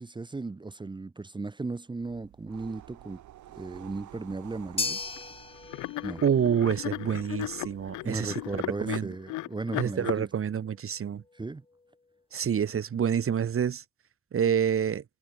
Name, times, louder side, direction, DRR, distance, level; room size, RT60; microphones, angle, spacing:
voice 1, 0.0-3.2 3.6-5.0 6.0-6.2 8.0-10.3 11.3-11.6, right 3 dB, 15° right, 0.7 m, -36 dB
sound 1, 2.0-8.8, right 13 dB, 75° right, 2.4 m, -52 dB
sound 2, 4.8-13.1, left 3 dB, 20° left, 1.3 m, -41 dB
sound 3, 5.1-5.3 5.7-10.2, left 18 dB, 80° left, 0.7 m, -36 dB
voice 2, 6.2-8.3 8.8-9.1 9.7-11.2 12.3-13.8 14.3-15.0, right 8 dB, 45° right, 1.7 m, -27 dB
cardioid pair, 90°, 30 cm